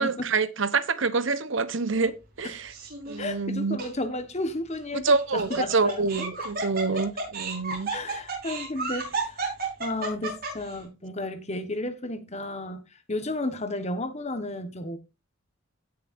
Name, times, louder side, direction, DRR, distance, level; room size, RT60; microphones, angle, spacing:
voice 1, 0.0-2.7 3.1-3.8 5.0-7.9, right 4 dB, 65° right, 1.0 m, -26 dB
Laughter, 2.7-3.2 3.8-3.9 5.1-10.7, right 3 dB, 45° right, 5.5 m, -32 dB
voice 2, 3.2-6.5 7.9-9.5 9.8-15.0, left 2 dB, 35° left, 1.5 m, -33 dB
17.0 x 6.7 x 2.7 m
head